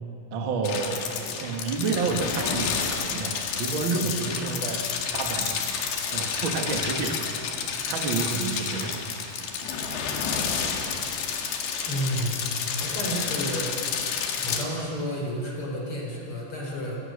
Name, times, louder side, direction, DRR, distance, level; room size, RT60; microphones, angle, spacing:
voice 1, 0.3-3.3 3.6-5.6 6.1-7.2 7.9-9.0, right 4 dB, 50° right, 3 dB, 1.5 m, -29 dB
sound 1, 0.6-14.6, left 6 dB, 70° left, 3.9 m, -30 dB
voice 2, 11.8-12.4 12.8-13.9 14.4-17.0, equal, 30° left, -2 dB, 5.1 m, -31 dB
29.5 x 19.5 x 6.7 m, 2.8 s
omnidirectional pair, 5.2 m